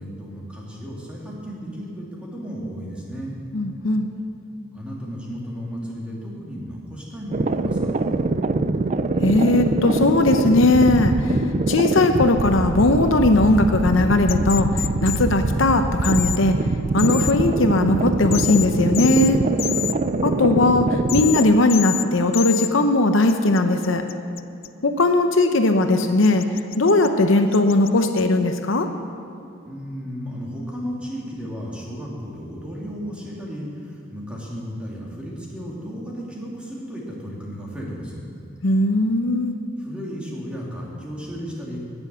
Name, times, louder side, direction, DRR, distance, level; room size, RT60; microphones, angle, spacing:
voice 1, 0.0-3.4 4.7-8.2 19.8-20.2 29.6-38.2 39.8-41.8, equal, 5° right, -4 dB, 2.6 m, -34 dB
voice 2, 3.5-4.1 9.2-11.4 11.7-14.7 15.0-16.6 16.9-19.4 20.2-24.0 24.8-26.4 26.8-28.9 38.6-39.5, left 2 dB, 65° left, 6 dB, 0.8 m, -18 dB
sound 1, 7.3-21.4, right 3 dB, 35° right, 0.4 m, -23 dB
sound 2, 14.3-15.2 16.0-16.4 17.0-17.3 18.3-18.7 18.9-19.3 19.6-19.9 21.1-21.4 21.7-22.0 22.3-22.7 23.3-24.7 26.2-27.1 27.5-28.2, left 14 dB, 45° left, 0.4 m, -28 dB
17.5 x 7.2 x 6.9 m, 2.6 s
head